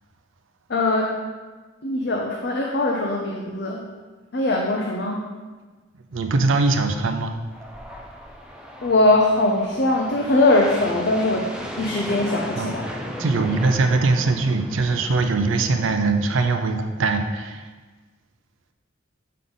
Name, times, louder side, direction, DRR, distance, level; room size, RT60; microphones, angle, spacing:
voice 1, 0.7-1.1 1.8-3.8 4.3-5.2 8.8-11.5 11.8-12.9, left 2 dB, 55° left, -1 dB, 0.6 m, -21 dB
voice 2, 6.1-7.4 12.6-17.7, right 3 dB, 75° right, 6 dB, 0.5 m, -22 dB
sound 1, 7.5-16.1, equal, 5° right, 0.5 m, -35 dB
7.5 x 3.8 x 3.9 m, 1.3 s
head